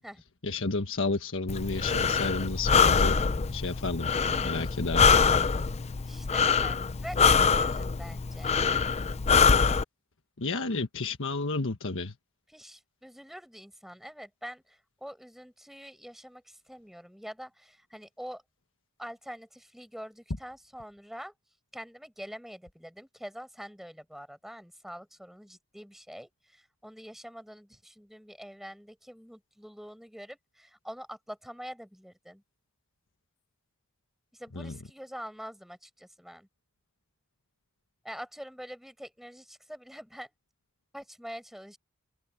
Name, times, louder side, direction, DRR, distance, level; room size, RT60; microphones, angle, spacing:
voice 1, 0.4-3.2 3.5-4.1 4.4-5.1 10.4-12.1 34.5-34.8, left 3 dB, 60° left, 1.4 m, -31 dB
Breathing, 1.5-9.8, left 5 dB, 30° left, 0.5 m, -24 dB
voice 2, 6.0-8.6 12.5-18.4 19.0-21.3 21.7-32.4 34.4-36.5 38.0-40.3 40.9-41.8, equal, ahead, 6.7 m, -45 dB
open air
head